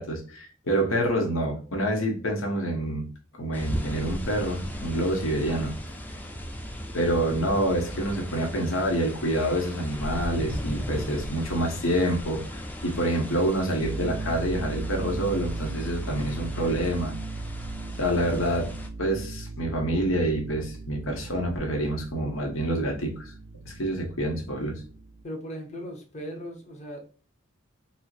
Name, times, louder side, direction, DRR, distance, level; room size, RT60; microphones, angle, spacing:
voice 1, 0.0-3.1 3.4-5.7 6.9-17.1 18.0-18.7 19.0-23.3 23.6-24.8, right 1 dB, 90° left, 1.1 m, -27 dB
sound 1, 3.5-18.9, equal, 10° left, 0.4 m, -37 dB
sound 2, 13.8-25.2, right 3 dB, 65° right, 0.4 m, -37 dB
voice 2, 25.2-27.0, equal, 35° left, 0.9 m, -38 dB
4.3 x 2.1 x 2.6 m
head